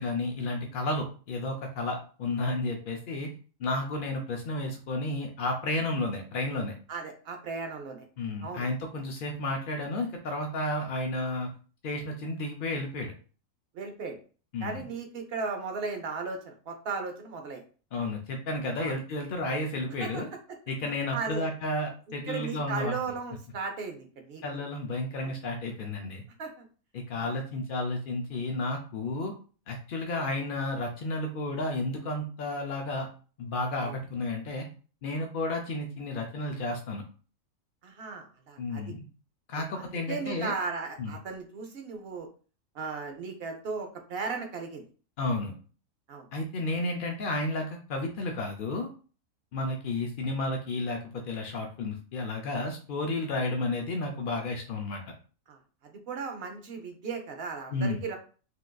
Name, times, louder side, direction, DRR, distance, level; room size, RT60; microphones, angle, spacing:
voice 1, 0.0-3.3 3.6-6.7 8.2-11.5 11.8-13.1 14.5-14.8 17.9-20.3 20.7-23.0 24.4-26.2 26.9-29.3 29.7-33.1 33.4-34.7 35.0-37.0 38.6-39.1 39.5-40.5 41.0-41.1 45.2-45.5 46.3-48.9 49.5-55.0 57.7-58.0, left 2 dB, 75° left, 2 dB, 0.5 m, -32 dB
voice 2, 6.9-8.0 8.4-8.6 13.7-14.2 14.6-17.6 18.8-18.9 20.0-20.2 21.1-21.5 22.3-24.6 25.2-25.3 26.4-26.7 27.2-27.3 30.1-30.3 33.8-33.9 37.8-38.8 39.5-42.3 42.7-44.8 46.1-46.3 55.5-55.6 55.8-58.2, right 4 dB, 55° right, 4 dB, 0.8 m, -36 dB
3.6 x 2.4 x 2.2 m, 0.38 s
omnidirectional pair, 1.4 m